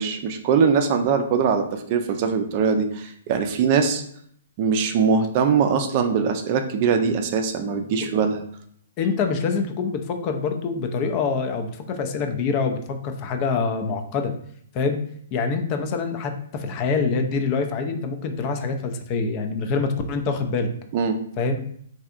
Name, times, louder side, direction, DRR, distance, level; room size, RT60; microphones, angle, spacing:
voice 1, 0.0-4.0 4.6-8.4 20.9-21.2, right 6 dB, 40° right, 6 dB, 0.4 m, -22 dB
voice 2, 9.0-14.3 14.7-15.0 15.3-20.7 21.4-21.6, left 4 dB, 35° left, 6 dB, 0.4 m, -25 dB
3.3 x 2.7 x 2.4 m, 0.65 s
hypercardioid pair, 130°, 0 cm